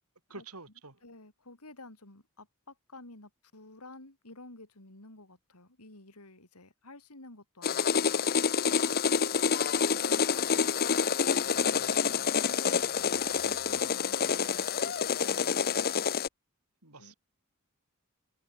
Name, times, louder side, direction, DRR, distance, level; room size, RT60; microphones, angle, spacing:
voice 1, 0.3-1.0 16.8-17.1, right 3 dB, 85° right, 5.1 m, -47 dB
voice 2, 1.0-8.4 8.9-9.6 9.9-16.0 17.0-17.1, left 2 dB, 90° left, 4.7 m, -52 dB
sound 1, 7.6-16.3, left 6 dB, 45° left, 0.7 m, -28 dB
open air
head